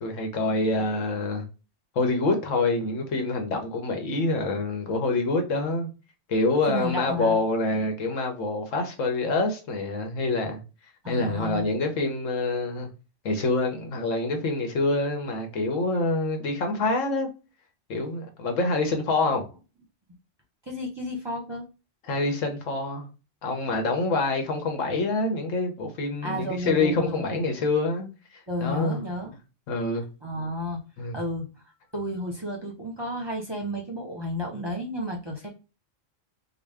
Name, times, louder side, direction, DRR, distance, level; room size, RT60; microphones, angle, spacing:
voice 1, 0.0-1.4 1.9-5.9 6.3-10.6 11.1-12.9 13.2-17.3 17.9-19.4 22.1-23.1 23.4-28.1 28.6-29.0 29.7-30.0 31.0-31.2, left 2 dB, 80° left, 1.3 m, -26 dB
voice 2, 6.7-7.4 11.0-11.7 20.7-21.6 26.2-27.4 28.5-29.3 30.2-30.8 31.1-31.5 31.9-35.5, equal, 25° right, 0.7 m, -32 dB
3.9 x 2.3 x 3.4 m
omnidirectional pair, 1.3 m